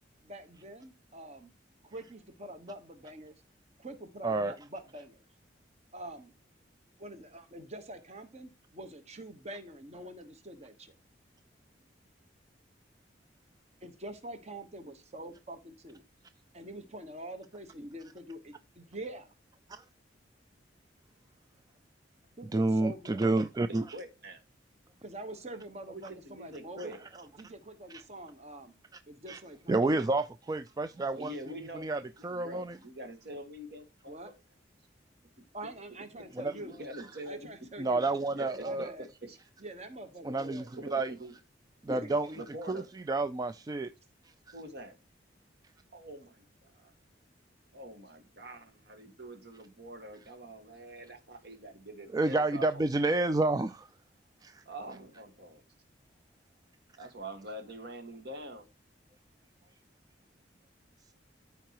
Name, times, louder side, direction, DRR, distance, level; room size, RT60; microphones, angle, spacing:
voice 1, 0.2-1.5 1.8-3.3 3.8-5.2 5.9-6.3 7.0-10.9 13.8-16.0 16.5-19.3 22.4-23.2 25.0-28.7 29.1-30.1 34.1-34.3 35.5-36.8 37.2-38.0 38.6-39.1 39.6-40.7 41.9-42.1 59.6-59.7, right 1 dB, 35° right, 1.2 m, -45 dB
voice 2, 22.5-23.8 29.3-29.4 29.7-31.3 31.7-32.8 36.4-36.5 37.8-38.9 40.2-40.6 40.9-41.1 41.8-42.3 42.7-43.9 44.5-44.6 52.1-53.9 54.4-54.6, right 2 dB, 20° right, 0.3 m, -29 dB
voice 3, 23.7-24.4 25.9-27.0 31.1-34.3 36.1-36.2 36.5-37.5 38.3-38.7 39.3-39.4 40.7-41.3 42.3-42.9 44.5-45.0 45.9-46.7 47.7-52.8 54.6-55.6 57.0-58.7, right 1 dB, 60° right, 1.7 m, -45 dB
13.5 x 4.6 x 2.9 m
head